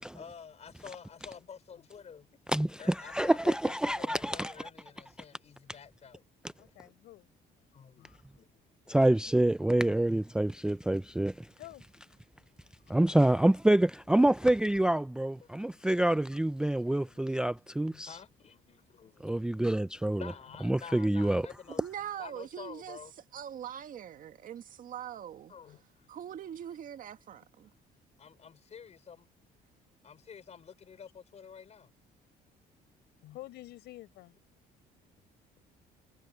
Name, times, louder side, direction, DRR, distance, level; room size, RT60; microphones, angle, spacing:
voice 1, 0.1-2.3 2.8-6.2 7.7-8.1 8.3-8.5 12.4-12.5 15.4-15.5 16.7-17.3 18.1-19.2 19.6-19.7 20.1-21.8 22.2-23.1 25.1-25.2 25.5-26.1 28.2-29.3 30.0-31.9, left 7 dB, 40° left, 5.4 m, -49 dB
voice 2, 2.5-4.5 8.9-11.5 12.9-18.1 19.2-20.2 20.6-21.5, right 1 dB, 5° right, 0.4 m, -27 dB
voice 3, 6.6-7.3 8.0-8.2 11.6-11.8 17.9-18.0 20.5-20.6 25.6-25.8 33.2-34.3, left 16 dB, 80° left, 4.4 m, -49 dB
voice 4, 21.7-23.0 23.3-25.5 26.1-27.7, right 10 dB, 55° right, 1.8 m, -42 dB
cardioid pair, 110°, 17 cm